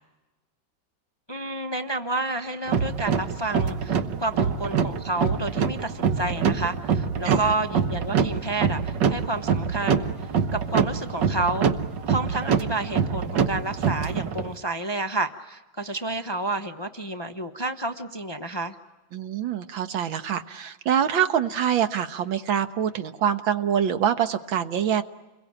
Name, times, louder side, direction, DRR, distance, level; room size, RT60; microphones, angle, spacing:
voice 1, 1.3-11.7 12.1-18.8, right 2 dB, 25° left, 7 dB, 0.6 m, -30 dB
sound 1, 2.7-14.5, right 6 dB, 65° right, 1.7 m, -25 dB
voice 2, 19.1-25.0, right 9 dB, 90° right, 9 dB, 2.0 m, -25 dB
29.0 x 22.0 x 8.8 m, 1.1 s
omnidirectional pair, 2.1 m